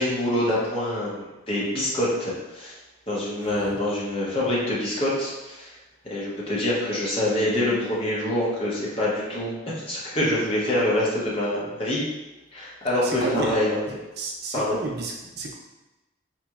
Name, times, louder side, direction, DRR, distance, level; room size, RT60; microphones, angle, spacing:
voice 1, 0.0-2.8 3.1-5.8 6.0-12.0 12.5-13.9 14.5-14.8, left 1 dB, 30° left, -6 dB, 0.8 m, -25 dB
voice 2, 3.4-3.8 13.0-13.5 14.2-15.5, right 2 dB, 55° right, -1 dB, 0.6 m, -31 dB
3.9 x 3.0 x 2.4 m, 1.1 s
head